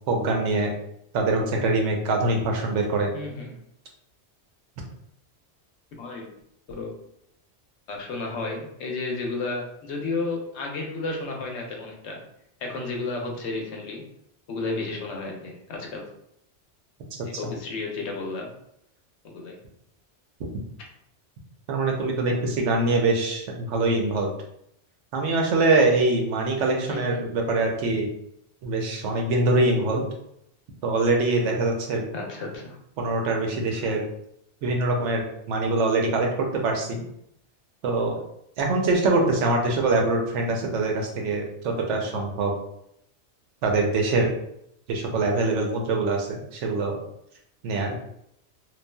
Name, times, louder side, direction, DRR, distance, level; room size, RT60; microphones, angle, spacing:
voice 1, 0.1-0.7 1.1-3.1 17.4-17.5 21.7-24.3 25.1-28.1 28.6-30.0 30.8-32.0 33.0-34.0 34.6-37.0 37.8-38.2 38.6-42.5 43.6-44.3 44.9-47.0 47.6-48.0, right 2 dB, 90° right, 1 dB, 1.0 m, -24 dB
voice 2, 3.1-3.6 6.0-6.3 6.7-6.9 7.9-12.2 12.6-14.0 14.5-16.0 17.2-18.5 19.2-19.6 26.9-27.2 32.1-32.8, left 3 dB, 75° left, 0 dB, 0.9 m, -32 dB
3.1 x 2.3 x 2.2 m, 0.76 s
omnidirectional pair, 1.2 m